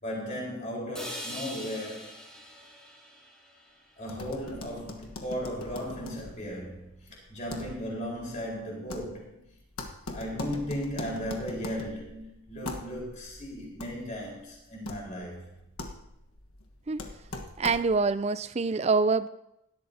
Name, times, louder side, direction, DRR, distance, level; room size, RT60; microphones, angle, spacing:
voice 1, 0.0-2.2 4.0-9.4 10.1-15.6, equal, 35° left, -3 dB, 4.2 m, -36 dB
sound 1, 0.9-5.0, equal, 5° left, 2.5 m, -44 dB
sound 2, 4.0-18.1, left 2 dB, 80° left, 1.4 m, -42 dB
voice 2, 17.6-19.3, right 4 dB, 30° right, 14 dB, 0.4 m, -25 dB
17.5 x 12.5 x 2.8 m, 0.80 s
head